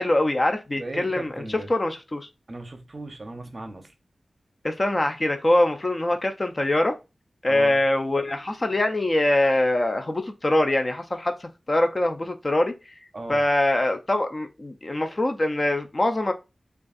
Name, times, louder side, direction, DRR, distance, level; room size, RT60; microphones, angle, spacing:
voice 1, 0.0-2.3 4.6-7.0 7.4-12.7 13.3-16.3, left 1 dB, 30° left, 0.4 m, -23 dB
voice 2, 0.8-1.7 2.5-3.9 7.5-7.8 13.1-13.4, right 2 dB, 40° right, 0.6 m, -36 dB
5.1 x 2.4 x 2.5 m
wide cardioid pair, 100°, 0 cm